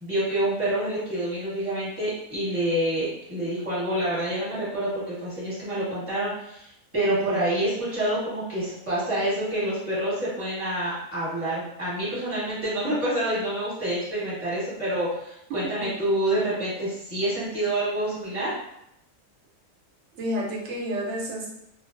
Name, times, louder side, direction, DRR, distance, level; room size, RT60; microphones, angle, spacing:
voice 1, 0.0-18.5, right 1 dB, 10° right, -10 dB, 1.2 m, -27 dB
voice 2, 7.1-7.5 20.2-21.5, equal, 60° right, -4 dB, 0.9 m, -30 dB
2.4 x 2.3 x 2.5 m, 0.79 s
omnidirectional pair, 1.6 m